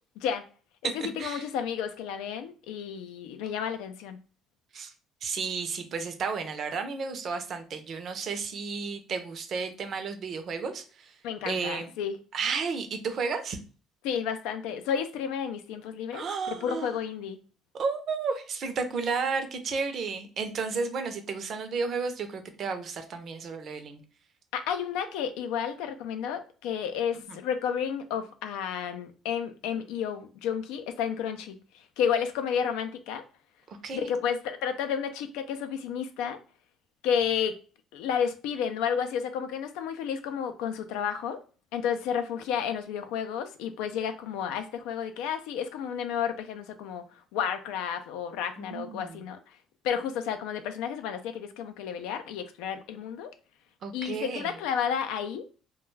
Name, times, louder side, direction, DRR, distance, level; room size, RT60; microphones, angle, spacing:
voice 1, 0.2-0.5 0.9-4.2 11.2-12.1 14.0-17.4 24.5-33.2 33.9-36.4 37.0-37.6 37.9-41.4 41.7-49.4 49.8-53.3 53.9-55.5, left 8 dB, 90° left, 0.4 m, -31 dB
voice 2, 5.2-11.2 11.5-11.9 12.3-13.6 16.1-16.9 17.7-24.0 27.3-27.4 33.7-34.1 48.6-49.2 53.8-54.6, right 5 dB, 50° right, 0.5 m, -32 dB
2.3 x 2.2 x 3.1 m
cardioid pair, 105°, 0 cm